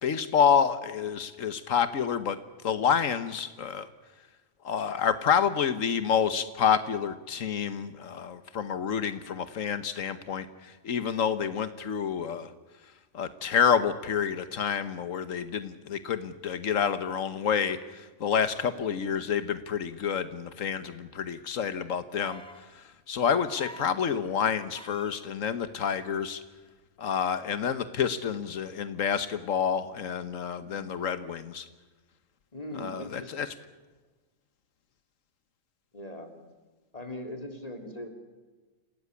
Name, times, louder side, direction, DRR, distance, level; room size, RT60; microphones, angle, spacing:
voice 1, 0.0-2.4 2.6-3.9 4.6-12.5 13.1-22.4 23.1-26.4 27.0-31.6 32.8-33.5, left 7 dB, 85° left, 12 dB, 1.5 m, -28 dB
sound 1, 22.1-22.7 23.5-24.0 24.7-25.2 26.7-26.8, equal, 5° left, 2.0 m, -46 dB
voice 2, 30.6-31.1 32.5-33.5 35.9-36.4 36.9-38.1, left 1 dB, 30° left, 5 dB, 3.5 m, -40 dB
28.0 x 18.0 x 9.7 m, 1.3 s
omnidirectional pair, 1.3 m